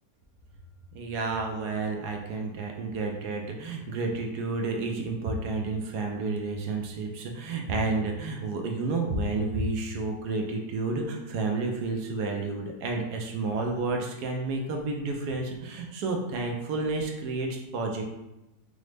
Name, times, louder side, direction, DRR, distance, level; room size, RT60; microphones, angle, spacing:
voice 1, 0.9-18.0, right 3 dB, 80° right, 2 dB, 1.1 m, -30 dB
4.9 x 2.1 x 3.2 m, 0.93 s
omnidirectional pair, 1.8 m